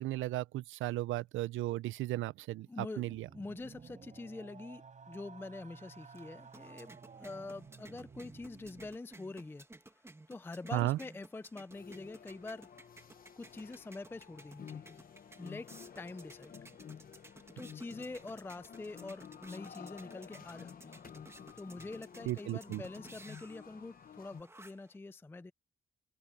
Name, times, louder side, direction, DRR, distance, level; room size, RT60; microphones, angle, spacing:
voice 1, 0.0-3.3 10.7-11.0 22.3-22.8, right 16 dB, 80° right, 0.6 m, -35 dB
voice 2, 2.7-9.7 9.9-10.0 10.3-12.7 13.4-15.0 15.4-16.5 17.6-21.0 21.6-25.5, left 3 dB, 10° left, 0.5 m, -45 dB
sound 1, 3.1-9.0, right 5 dB, 40° right, 4.3 m, -54 dB
sound 2, 5.8-25.0, right 2 dB, 15° right, 2.0 m, -57 dB
sound 3, 11.7-24.4, left 7 dB, 45° left, 1.2 m, -52 dB
cardioid pair, 90°, 20 cm